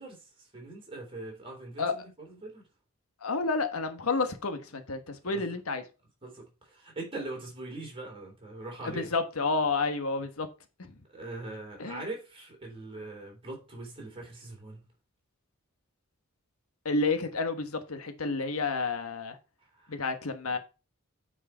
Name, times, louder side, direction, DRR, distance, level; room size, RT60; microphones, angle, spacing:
voice 1, 0.0-2.7 5.2-5.4 6.2-9.1 11.1-14.9 19.8-20.0, right 2 dB, 25° right, 3.5 m, -42 dB
voice 2, 3.2-5.8 8.8-10.5 10.9-11.0 11.8-12.0 16.8-19.4 19.9-20.6, left 3 dB, 80° left, 1.2 m, -30 dB
8.7 x 4.8 x 4.5 m
head